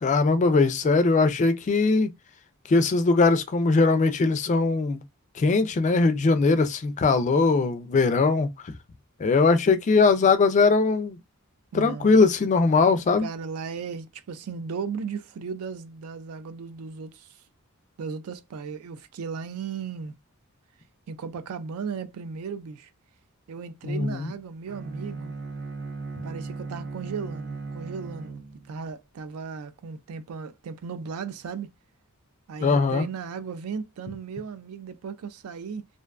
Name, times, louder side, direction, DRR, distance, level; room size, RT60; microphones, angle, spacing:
voice 1, 0.0-2.1 2.7-5.0 5.4-8.5 9.2-11.2 11.7-13.3 23.9-24.3 32.6-33.0, left 4 dB, 35° left, 0.3 m, -20 dB
voice 2, 11.7-12.2 13.2-17.4 18.0-20.1 21.1-22.9 23.5-25.3 26.2-28.4 28.7-31.7 32.5-35.9, right 5 dB, 75° right, 0.4 m, -36 dB
Bowed string instrument, 24.7-28.9, right 3 dB, 50° right, 0.8 m, -37 dB
2.5 x 2.2 x 2.3 m
head